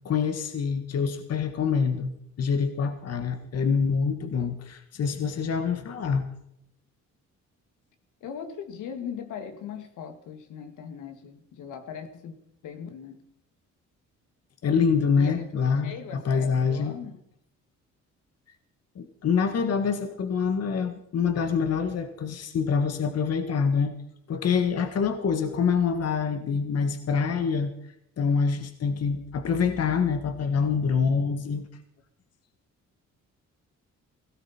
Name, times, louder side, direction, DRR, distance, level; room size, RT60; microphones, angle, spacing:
voice 1, 0.0-6.2 14.6-16.9 18.9-23.9 24.3-27.7 28.2-31.6, left 6 dB, 55° left, 8 dB, 1.5 m, -26 dB
voice 2, 8.2-12.3 12.6-13.2 15.2-15.5 15.8-17.2, left 7 dB, 85° left, 7 dB, 2.1 m, -39 dB
17.5 x 16.0 x 4.3 m, 0.78 s
cardioid pair, 90°, 30 cm